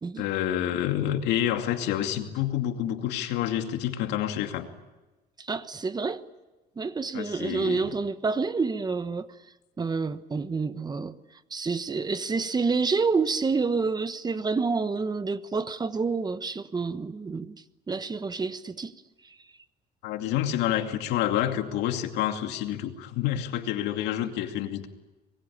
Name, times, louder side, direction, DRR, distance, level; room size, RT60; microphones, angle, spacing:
voice 1, 0.1-4.7 7.1-7.9 20.0-24.9, left 11 dB, 90° left, 2.5 m, -28 dB
voice 2, 5.4-6.2 6.8-9.3 9.8-11.2 11.5-17.6 17.9-18.9 19.2-19.3, right 4 dB, 25° right, 1.2 m, -28 dB
26.0 x 22.0 x 8.7 m
cardioid pair, 110°, 17 cm